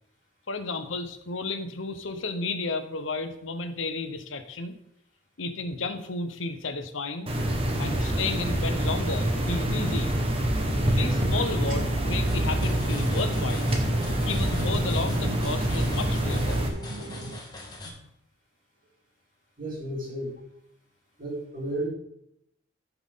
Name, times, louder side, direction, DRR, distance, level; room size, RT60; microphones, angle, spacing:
voice 1, 0.5-4.7 5.4-7.3 7.8-10.1 10.8-13.7 14.3-16.7 17.8-18.0, left 3 dB, 90° left, 9 dB, 1.0 m, -32 dB
sound 1, 7.3-16.7, right 1 dB, 30° right, 1.3 m, -26 dB
sound 2, 10.7-17.4, right 1 dB, 65° right, 1.5 m, -39 dB
sound 3, 12.3-17.9, left 1 dB, 20° left, 1.6 m, -41 dB
voice 2, 19.6-20.4 21.2-21.9, right 1 dB, 45° right, -5 dB, 4.2 m, -33 dB
14.0 x 5.8 x 3.7 m, 0.75 s
head